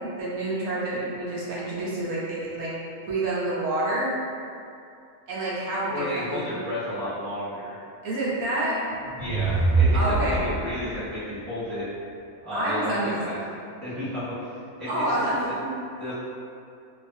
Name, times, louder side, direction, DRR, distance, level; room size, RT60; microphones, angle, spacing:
voice 1, 0.2-2.7 3.1-4.1 5.3-6.4 8.0-9.0 9.9-10.4 12.5-13.2 14.9-15.8, right 1 dB, 80° right, -8 dB, 1.1 m, -28 dB
voice 2, 5.9-7.7 9.2-11.9 12.4-13.4 13.8-15.5 15.9-16.1, left 1 dB, ahead, -13 dB, 1.0 m, -32 dB
sound 1, 8.9-11.0, right 3 dB, 50° right, 0.8 m, -24 dB
2.6 x 2.4 x 2.6 m, 2.5 s
omnidirectional pair, 1.5 m